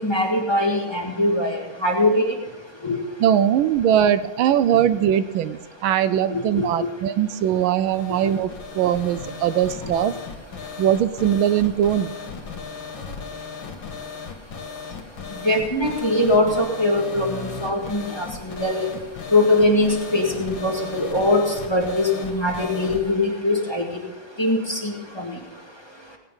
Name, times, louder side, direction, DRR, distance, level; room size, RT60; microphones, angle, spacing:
voice 1, 0.0-1.6 1.8-2.2 2.8-3.0 6.6-6.7 15.4-18.9 19.3-21.4 21.7-23.8 24.4-25.3, left 1 dB, 15° left, -1 dB, 1.7 m, -21 dB
voice 2, 3.2-8.5 8.7-10.1 10.8-12.1, right 10 dB, 80° right, 13 dB, 1.4 m, -20 dB
sound 1, 7.2-23.1, left 5 dB, 70° left, 1.9 m, -37 dB
18.5 x 9.0 x 5.4 m, 1.2 s
omnidirectional pair, 2.2 m